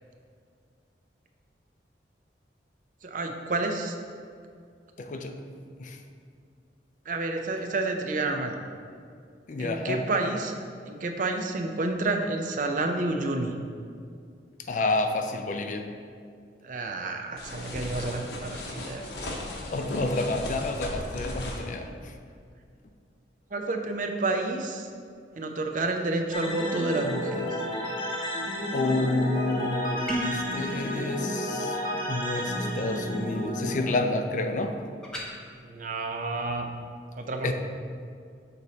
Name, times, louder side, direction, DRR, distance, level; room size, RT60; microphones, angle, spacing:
voice 1, 3.0-4.0 7.1-8.6 9.6-10.5 10.8-13.5 16.6-19.1 20.4-20.5 23.5-24.9 25.4-27.6 35.6-36.7 37.2-37.5, right 2 dB, 45° right, 4 dB, 0.5 m, -29 dB
voice 2, 5.0-5.4 5.8-6.0 9.5-10.0 14.7-15.9 19.5-22.1 28.7-31.8 32.1-34.8 37.4-37.5, left 2 dB, 45° left, 6 dB, 0.4 m, -29 dB
sound 1, 17.4-21.7, left 1 dB, 70° left, 0.9 m, -36 dB
sound 2, 26.3-33.7, equal, 25° left, 0.9 m, -32 dB
sound 3, 30.1-30.5 35.0-35.3, equal, 5° left, 0.8 m, -31 dB
6.7 x 4.1 x 4.0 m, 2.2 s
head